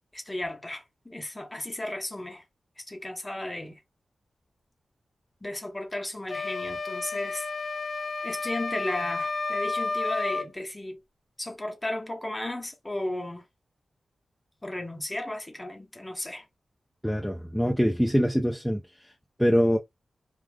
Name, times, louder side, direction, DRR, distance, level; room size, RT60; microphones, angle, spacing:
voice 1, 0.1-2.4 2.8-3.8 5.4-7.5 8.2-11.0 11.4-13.4 14.6-16.4, left 1 dB, 20° left, 0.9 m, -34 dB
sound 1, 6.3-10.5, left 3 dB, 60° left, 0.6 m, -31 dB
voice 2, 17.0-18.8 19.4-19.8, equal, ahead, 0.6 m, -23 dB
3.4 x 2.3 x 2.3 m
cardioid pair, 60°, 0 cm